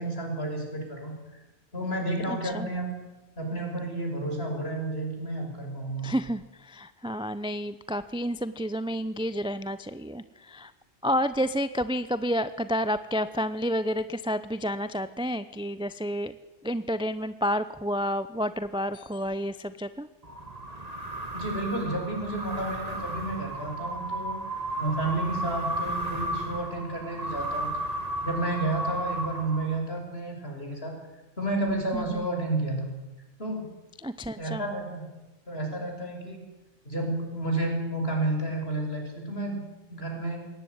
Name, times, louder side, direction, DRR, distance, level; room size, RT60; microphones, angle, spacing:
voice 1, 0.0-1.4 1.7-2.9 3.4-6.1 21.3-24.4 24.8-27.7 28.2-30.9 31.4-32.9 33.4-33.7 34.4-35.1 35.5-36.4 36.8-39.6 39.9-40.5, right 2 dB, 55° left, 2 dB, 6.3 m, -31 dB
voice 2, 2.3-2.7 6.0-10.7 11.0-16.3 16.6-20.1 31.9-32.3 34.0-34.6, equal, 5° right, 13 dB, 0.6 m, -30 dB
sound 1, 20.2-30.0, right 1 dB, 30° right, 2.6 m, -34 dB
22.0 x 18.0 x 9.6 m, 1.0 s
omnidirectional pair, 1.2 m